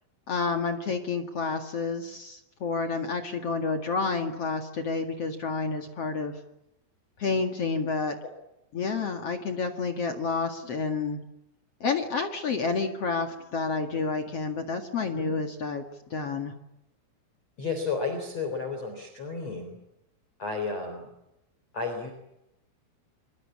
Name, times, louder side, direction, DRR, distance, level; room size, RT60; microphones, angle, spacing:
voice 1, 0.3-6.3 7.2-8.1 8.7-11.2 11.8-15.8 16.1-16.5, left 4 dB, 60° left, 6 dB, 1.6 m, -29 dB
voice 2, 17.6-19.8 20.4-21.1 21.7-22.1, left 4 dB, 35° left, 5 dB, 4.3 m, -32 dB
26.5 x 24.0 x 8.5 m, 0.86 s
omnidirectional pair, 6.0 m